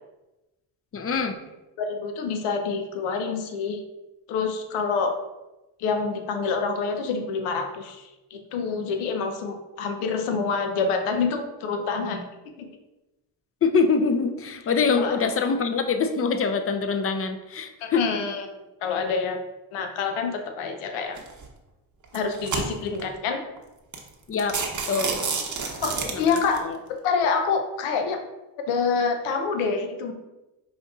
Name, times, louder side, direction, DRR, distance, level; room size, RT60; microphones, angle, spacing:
voice 1, 0.9-1.4 13.6-18.0 24.3-24.6 24.9-25.2 26.1-26.8, left 5 dB, 30° left, 8 dB, 0.5 m, -24 dB
voice 2, 1.8-3.8 4.3-5.2 5.8-12.3 12.6-12.7 15.0-15.2 17.8-19.4 19.7-21.2 22.1-23.4 25.8-28.2 28.7-30.1, left 5 dB, 80° left, 5 dB, 0.7 m, -27 dB
sound 1, 21.2-21.4 22.0-23.0 23.6-23.7 23.9-24.1 24.4-26.6, right 5 dB, 35° right, 0.8 m, -29 dB
5.1 x 2.7 x 2.3 m, 1.0 s
supercardioid pair, 60°, 49 cm